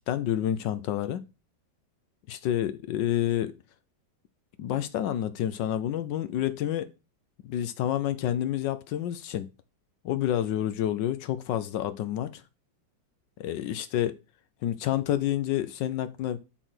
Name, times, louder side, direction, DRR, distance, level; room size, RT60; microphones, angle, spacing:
voice 1, 0.1-1.2 2.3-3.5 4.6-6.9 7.4-9.5 10.0-12.4 13.4-14.1 14.6-16.4, left 11 dB, 75° left, 1.3 m, -29 dB
7.8 x 4.1 x 6.4 m
omnidirectional pair, 2.0 m